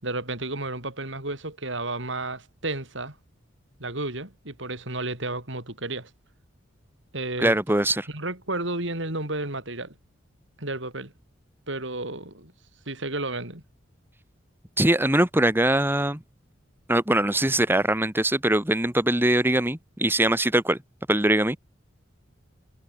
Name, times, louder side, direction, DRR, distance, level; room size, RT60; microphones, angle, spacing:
voice 1, 0.0-3.2 3.8-6.1 7.1-7.6 8.1-9.9 10.6-11.1 11.7-12.5 12.9-13.6, right 2 dB, 65° right, 6.0 m, -32 dB
voice 2, 7.4-8.1 14.8-16.2 16.9-20.8 21.1-21.6, right 1 dB, 10° right, 2.2 m, -22 dB
head